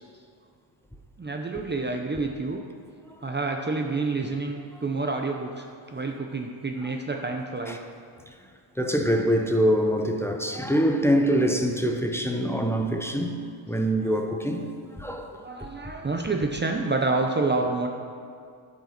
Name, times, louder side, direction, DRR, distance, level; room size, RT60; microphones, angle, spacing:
voice 1, 1.2-2.6 3.2-7.8 14.0-14.2 14.6-14.7 15.3-17.9, right 3 dB, 20° right, 3 dB, 0.8 m, -28 dB
voice 2, 8.8-13.4 13.7-15.4, equal, 5° left, 3 dB, 0.9 m, -24 dB
10.0 x 5.8 x 5.9 m, 2.3 s
supercardioid pair, 70°, 50 cm